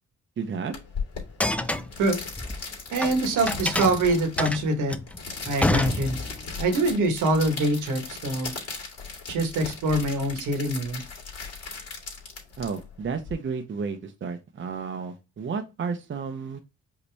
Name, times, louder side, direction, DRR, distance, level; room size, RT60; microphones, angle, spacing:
voice 1, 0.4-0.7 12.6-16.6, right 5 dB, 40° right, 0.8 m, -32 dB
sound 1, 0.7-13.3, left 5 dB, 55° left, 2.5 m, -37 dB
sound 2, 1.2-3.1 3.5-6.5, left 1 dB, 5° left, 0.4 m, -27 dB
voice 2, 2.9-5.0 5.5-6.2 6.6-8.5 9.3-11.0, right 2 dB, 80° right, 1.5 m, -24 dB
5.2 x 2.9 x 3.4 m
cardioid pair, 90°, 30 cm